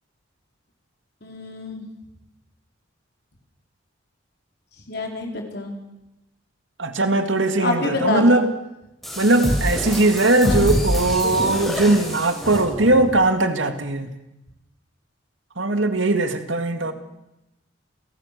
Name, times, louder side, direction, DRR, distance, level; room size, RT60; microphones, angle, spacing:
voice 1, 1.2-1.8 4.9-5.7 7.6-8.4 10.4-10.7 16.9-17.0, left 2 dB, 55° left, 2 dB, 4.6 m, -26 dB
voice 2, 6.8-8.5 9.2-14.1 15.6-16.9, right 2 dB, 75° right, 8 dB, 2.1 m, -19 dB
sound 1, 9.0-13.2, equal, ahead, 8.0 m, -26 dB
29.5 x 17.0 x 6.8 m, 0.92 s
head